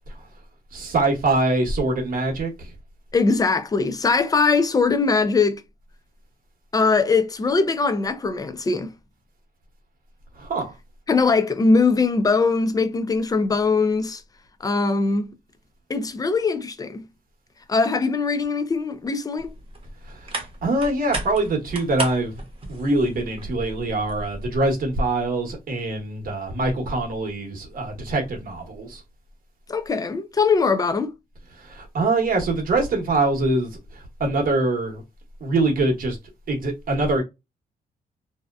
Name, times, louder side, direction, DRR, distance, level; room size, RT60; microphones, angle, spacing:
voice 1, 0.7-2.7 10.4-10.7 20.1-20.3 20.6-22.4 22.7-29.0 31.6-35.0 35.4-36.2 36.5-37.2, right 2 dB, 60° right, 1.0 m, -24 dB
voice 2, 3.1-5.6 6.7-8.9 11.1-14.2 14.6-15.3 15.9-17.0 17.7-19.5 29.7-31.1, left 4 dB, 20° left, 0.4 m, -21 dB
sound 1, 19.4-24.6, right 2 dB, 35° right, 0.9 m, -35 dB
2.7 x 2.1 x 2.3 m
cardioid pair, 95°, 16 cm